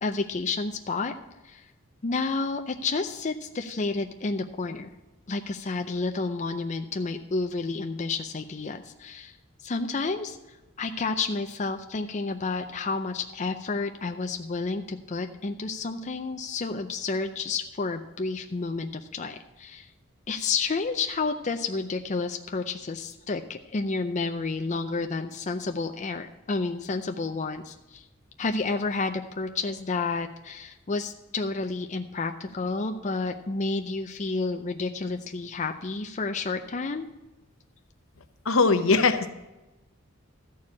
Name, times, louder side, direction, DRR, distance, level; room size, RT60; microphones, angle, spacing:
voice 1, 0.0-1.1 1.4-1.7 2.0-4.9 5.3-19.9 20.3-28.0 28.4-37.1, left 3 dB, 35° left, 5 dB, 0.5 m, -30 dB
voice 2, 38.4-39.3, left 4 dB, 75° left, 10 dB, 0.9 m, -21 dB
13.5 x 4.7 x 8.4 m, 1.1 s
head